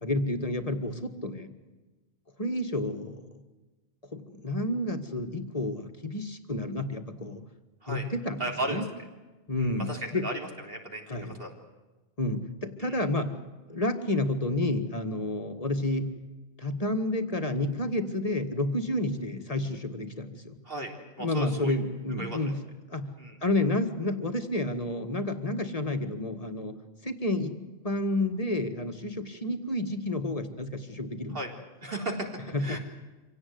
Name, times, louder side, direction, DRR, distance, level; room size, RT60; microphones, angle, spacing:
voice 1, 0.0-1.5 2.4-3.3 4.1-7.4 7.9-8.4 8.7-8.8 9.5-10.2 11.1-11.4 12.2-13.3 13.7-16.1 16.6-20.6 21.2-22.6 22.9-23.1 23.4-26.8 27.0-27.6 27.8-31.4 32.5-32.8, left 2 dB, 30° left, 6 dB, 1.9 m, -30 dB
voice 2, 8.4-8.8 9.6-11.5 12.8-13.0 20.7-20.9 21.2-21.8 22.2-22.5 23.2-23.4 31.3-31.5 31.8-32.8, right 2 dB, 50° right, 1 dB, 4.0 m, -35 dB
25.5 x 17.5 x 9.6 m, 1.2 s
omnidirectional pair, 1.3 m